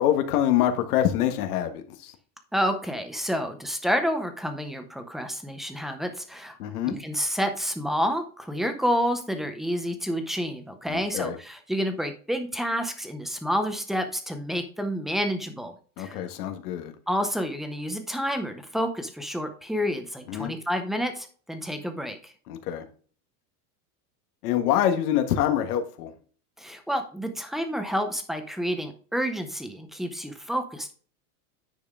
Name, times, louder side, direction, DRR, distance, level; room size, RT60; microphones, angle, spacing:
voice 1, 0.0-2.1 6.6-6.9 10.9-11.4 16.0-16.9 20.3-20.5 22.5-22.9 24.4-26.1, left 11 dB, 80° left, 6 dB, 1.4 m, -25 dB
voice 2, 2.5-6.6 6.9-16.2 17.1-22.3 26.6-30.9, equal, ahead, 7 dB, 0.5 m, -29 dB
9.8 x 5.3 x 3.6 m, 0.42 s
supercardioid pair, 160°, 45 cm